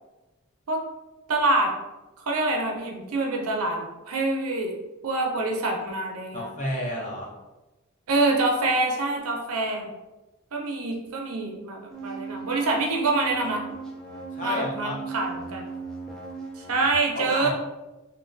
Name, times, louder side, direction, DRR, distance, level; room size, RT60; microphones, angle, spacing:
voice 1, 1.3-1.7 2.3-4.7 5.0-6.5 8.1-9.8 10.5-13.6 14.4-15.7 16.6-17.5, right 2 dB, 80° right, 1 dB, 0.6 m, -26 dB
voice 2, 6.3-7.3 14.3-15.0 17.1-17.5, equal, 35° left, -3 dB, 0.7 m, -31 dB
sound 1, 11.9-16.9, right 4 dB, 5° left, 0.4 m, -37 dB
3.0 x 2.9 x 2.5 m, 1.1 s
head